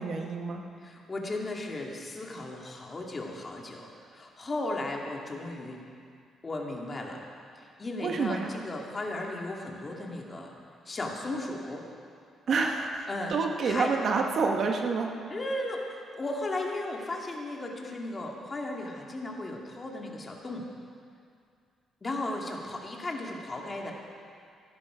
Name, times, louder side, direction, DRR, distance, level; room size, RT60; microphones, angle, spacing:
voice 1, 0.0-0.6 8.0-8.5 12.5-15.1, right 4 dB, 55° right, 3 dB, 1.3 m, -28 dB
voice 2, 0.8-5.8 6.4-7.2 7.5-10.6 10.9-11.8 13.1-13.4 13.6-13.9 15.3-20.6 22.0-23.9, left 2 dB, 30° left, 0 dB, 2.3 m, -35 dB
16.5 x 11.5 x 5.0 m, 2.3 s
cardioid pair, 90°, 0 cm